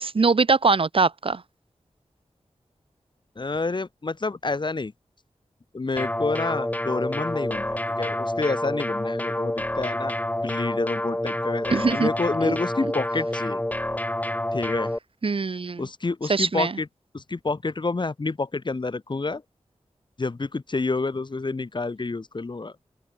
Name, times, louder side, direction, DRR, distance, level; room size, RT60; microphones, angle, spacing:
voice 1, 0.0-1.4 11.7-12.1 12.4-12.6 15.2-15.9 16.3-16.7, right 4 dB, 50° right, 0.8 m, -22 dB
voice 2, 3.4-4.9 5.7-10.1 10.4-13.6 14.5-14.9 15.8-16.9 17.1-19.4 20.2-22.7, left 3 dB, 45° left, 1.2 m, -28 dB
sound 1, 6.0-15.0, left 1 dB, 15° left, 2.2 m, -28 dB
open air
wide cardioid pair, 75°, 11 cm